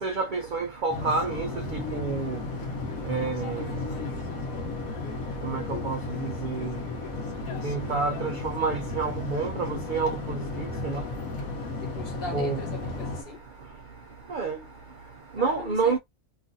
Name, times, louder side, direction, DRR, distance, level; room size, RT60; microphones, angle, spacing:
voice 1, 0.0-2.4 3.1-3.6 5.4-6.7 7.6-11.0 12.3-12.6 14.3-14.6 15.4-16.0, right 4 dB, 75° right, 0.4 m, -29 dB
sound 1, 0.9-13.2, left 3 dB, 70° left, 1.2 m, -34 dB
voice 2, 11.8-13.5 15.3-16.0, left 3 dB, 45° left, 0.9 m, -40 dB
3.1 x 2.4 x 2.6 m
omnidirectional pair, 1.5 m